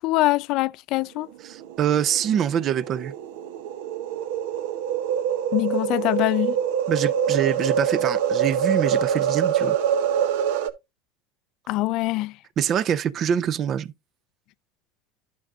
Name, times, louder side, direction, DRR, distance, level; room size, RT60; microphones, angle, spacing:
voice 1, 0.0-1.3 5.5-6.6 11.7-12.4, left 18 dB, 60° left, 0.3 m, -23 dB
voice 2, 1.4-3.1 6.9-9.8 12.6-13.9, right 9 dB, 40° right, 0.4 m, -25 dB
sound 1, 1.6-10.7, right 8 dB, 80° right, 0.6 m, -25 dB
11.5 x 6.0 x 2.4 m
supercardioid pair, 110°, 0 cm